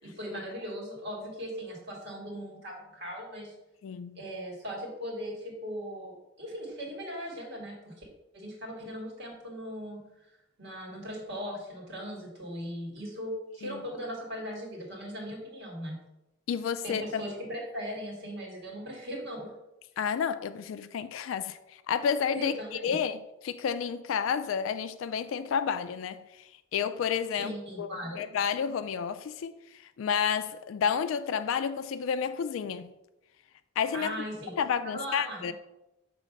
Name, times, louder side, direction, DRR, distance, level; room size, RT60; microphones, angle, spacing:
voice 1, 0.0-3.5 4.2-8.0 8.3-10.0 10.6-16.0 16.8-19.5 22.3-23.0 27.4-28.2 33.9-34.5 34.8-35.5, equal, 55° right, 2.0 m, -38 dB
voice 2, 3.8-4.2 13.6-13.8 16.5-17.2 20.0-27.5 27.8-27.9 28.2-32.9 33.8-34.2 34.6-35.5, left 7 dB, 75° left, 0.3 m, -31 dB
6.3 x 3.1 x 5.2 m
head